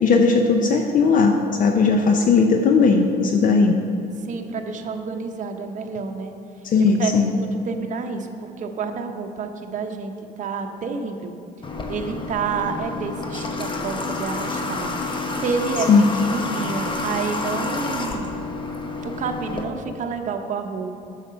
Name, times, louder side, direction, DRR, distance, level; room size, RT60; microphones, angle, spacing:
voice 1, 0.0-3.8 6.7-7.3 15.9-16.1, left 4 dB, 50° left, 4 dB, 0.6 m, -17 dB
voice 2, 4.2-6.3 7.0-10.1 10.4-11.4 11.9-15.2 15.4-15.9 16.2-18.4 19.0-21.1, right 5 dB, 50° right, 5 dB, 0.9 m, -29 dB
Water / Water tap faucet, 11.6-19.6, left 3 dB, 30° left, 0.9 m, -29 dB
7.8 x 6.6 x 5.6 m, 2.8 s
cardioid pair, 110°, 17 cm